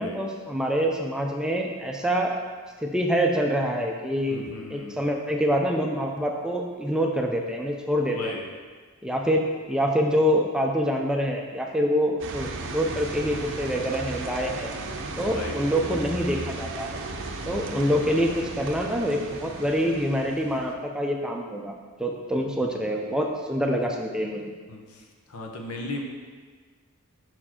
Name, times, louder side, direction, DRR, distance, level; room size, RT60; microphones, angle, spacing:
voice 1, 0.0-2.3 2.8-4.4 4.7-8.3 9.0-9.4 9.7-14.7 15.2-17.0 17.5-21.7 22.0-24.5, equal, 5° right, 1 dB, 0.4 m, -26 dB
voice 2, 4.3-5.0 8.1-8.4 15.3-15.6 17.6-17.9 24.7-25.0 25.3-26.0, left 2 dB, 90° left, 1 dB, 0.9 m, -36 dB
sound 1, 12.2-20.7, right 3 dB, 60° right, 0.6 m, -35 dB
5.9 x 4.4 x 4.3 m, 1.5 s
head